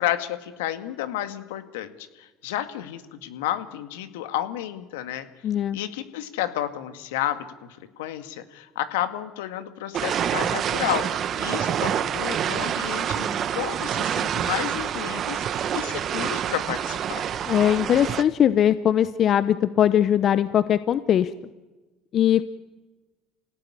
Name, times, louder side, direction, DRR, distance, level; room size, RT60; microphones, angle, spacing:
voice 1, 0.0-5.3 5.7-7.4 8.0-17.3, left 12 dB, 85° left, 9 dB, 2.0 m, -31 dB
voice 2, 5.4-5.8 17.5-21.3 22.1-22.4, left 10 dB, 55° left, 14 dB, 0.9 m, -20 dB
sound 1, 9.9-18.2, right 9 dB, 55° right, 1.5 m, -27 dB
28.0 x 17.5 x 9.8 m, 1.2 s
supercardioid pair, 75°, 0 cm